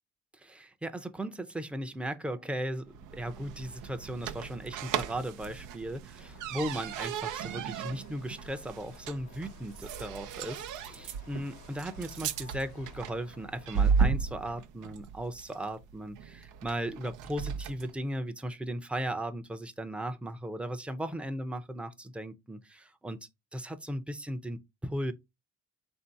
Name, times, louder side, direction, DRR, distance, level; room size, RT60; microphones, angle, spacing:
voice 1, 0.3-23.2 23.5-25.1, right 1 dB, 5° right, 0.5 m, -37 dB
sound 1, 2.2-6.9, right 1 dB, 40° right, 1.0 m, -63 dB
sound 2, 2.9-17.9, right 6 dB, 85° right, 0.5 m, -35 dB
sound 3, 6.2-14.1, left 7 dB, 75° left, 1.0 m, -57 dB
3.5 x 2.7 x 4.5 m
cardioid pair, 90°, 30 cm